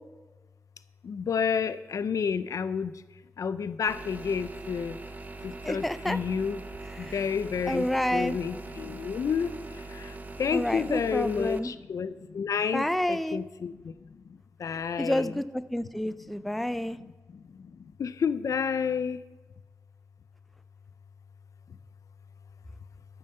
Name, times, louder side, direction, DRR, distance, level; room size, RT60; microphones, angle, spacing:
voice 1, 1.1-2.9 3.4-5.0 5.7-6.6 7.1-7.9 8.1-9.5 10.4-13.7 14.6-15.3 18.0-19.2, left 6 dB, 80° left, 14 dB, 0.4 m, -29 dB
sound 1, 3.9-11.6, right 3 dB, 30° right, 0.7 m, -42 dB
voice 2, 5.6-6.2 6.9-7.3 7.7-8.4 10.5-11.7 12.7-13.4 15.0-17.0, left 1 dB, ahead, 12 dB, 0.4 m, -29 dB
13.5 x 5.6 x 6.5 m, 1.2 s
wide cardioid pair, 120°, 6 cm